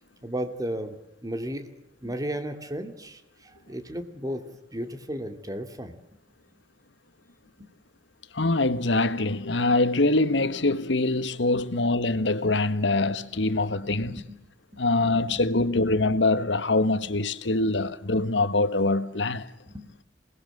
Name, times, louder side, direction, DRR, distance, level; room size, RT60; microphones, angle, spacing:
voice 1, 0.2-1.0 1.2-1.8 2.0-4.4 4.7-5.9 7.6-7.7 11.5-11.7 12.1-12.2 13.6-14.4 15.0-15.8 19.7-20.0, equal, 20° right, 2.6 m, -35 dB
voice 2, 8.3-14.2 14.8-19.5, left 2 dB, 80° left, 1.5 m, -24 dB
27.0 x 19.5 x 7.9 m
head